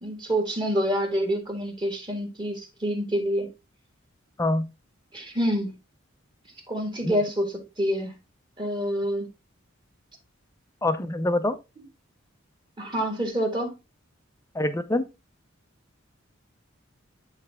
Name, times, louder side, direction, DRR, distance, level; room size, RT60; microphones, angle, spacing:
voice 1, 0.0-3.5 5.1-5.7 6.7-8.1 8.6-9.3 12.8-13.7, equal, 25° right, 1.7 m, -27 dB
voice 2, 10.8-11.6 14.5-15.1, left 1 dB, 15° left, 0.6 m, -25 dB
9.9 x 3.3 x 3.4 m
head